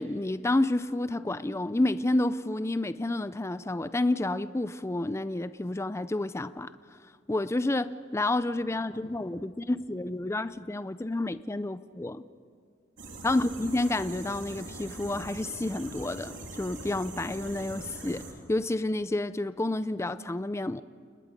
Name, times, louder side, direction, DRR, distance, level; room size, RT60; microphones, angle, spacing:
voice 1, 0.0-6.7 7.3-12.2 13.2-16.3 16.6-18.2 18.5-20.8, left 2 dB, 15° left, 0.4 m, -29 dB
sound 1, 13.0-18.3, right 2 dB, 75° right, 3.2 m, -42 dB
29.5 x 19.5 x 5.2 m
head